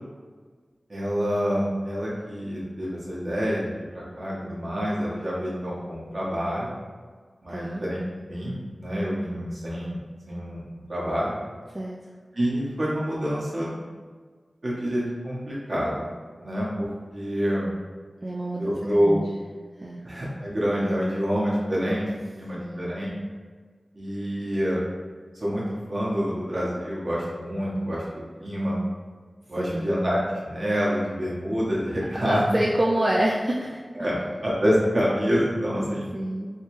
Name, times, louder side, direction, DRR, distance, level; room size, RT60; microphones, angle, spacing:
voice 1, 0.9-6.7 7.4-8.0 8.3-10.0 10.3-11.3 12.3-13.8 14.6-16.1 16.4-17.7 18.6-19.2 20.0-22.0 22.3-23.2 23.9-24.8 25.3-28.8 29.5-32.4 33.9-36.1, equal, 55° right, -6 dB, 1.2 m, -27 dB
voice 2, 7.5-7.8 11.7-12.0 18.2-19.4 19.8-20.0 22.5-22.9 29.6-29.9 32.2-33.8 36.1-36.5, right 1 dB, 30° right, -4 dB, 0.4 m, -27 dB
3.2 x 3.1 x 3.1 m, 1.5 s
wide cardioid pair, 60°, 0 cm